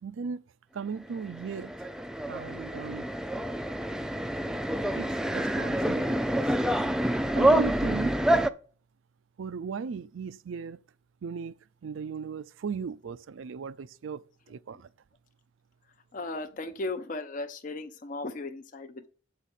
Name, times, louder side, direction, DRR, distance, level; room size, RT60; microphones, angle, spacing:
voice 1, 0.0-0.4 0.7-1.9 2.3-3.1 4.9-6.6 7.3-8.2 9.4-10.8 11.2-11.5 11.8-14.9, right 6 dB, 85° right, 0.4 m, -37 dB
sound 1, 1.2-8.5, right 1 dB, 5° right, 0.3 m, -27 dB
voice 2, 16.1-19.1, left 2 dB, 40° left, 0.5 m, -36 dB
8.0 x 4.2 x 6.4 m
head